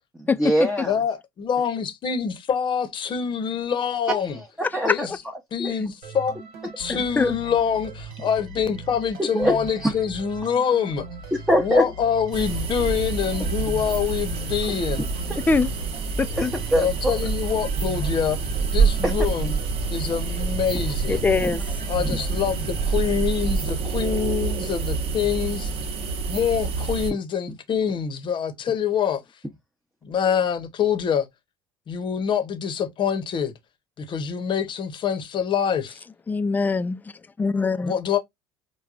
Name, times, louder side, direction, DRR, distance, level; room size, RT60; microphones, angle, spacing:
voice 1, 0.2-0.9 4.2-5.1 5.6-5.7 9.3-9.9 11.3-11.8 15.3-15.4 16.3-17.2 19.0-19.1 21.4-21.6 22.0-22.2, equal, 5° right, 0.7 m, -24 dB
voice 2, 0.9-4.4 4.8-5.1 5.5-6.3 6.8-11.1 11.6-15.1 16.7-18.4 18.7-19.5 19.9-21.2 21.9-25.7 26.3-29.2 30.0-31.3 31.9-33.5 34.0-36.0 37.8-38.2, left 7 dB, 45° left, 0.8 m, -25 dB
sound 1, 6.0-23.6, right 3 dB, 75° right, 1.3 m, -40 dB
sound 2, 12.3-27.1, right 4 dB, 60° right, 0.9 m, -27 dB
voice 3, 16.2-16.5 21.1-21.8 36.3-37.0 37.4-37.9, left 4 dB, 15° left, 0.3 m, -22 dB
4.6 x 2.2 x 2.4 m
supercardioid pair, 95°, 11 cm